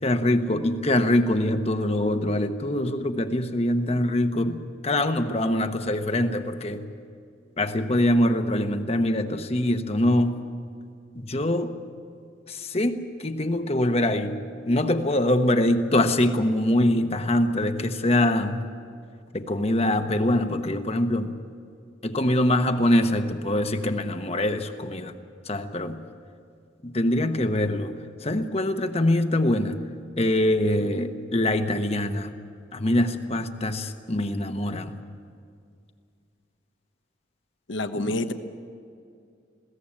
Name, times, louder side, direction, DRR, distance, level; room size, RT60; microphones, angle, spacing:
voice 1, 0.0-6.8 7.6-10.5 11.1-11.8 12.5-14.4 14.7-18.6 19.3-21.3 22.0-25.1 25.4-26.0 26.8-27.9 28.2-29.8 30.2-32.3 32.7-35.0 37.9-38.1, left 1 dB, 30° left, 7 dB, 1.1 m, -24 dB
voice 2, 37.7-38.3, left 1 dB, 80° left, 8 dB, 1.2 m, -27 dB
21.5 x 16.5 x 8.7 m, 2.4 s
head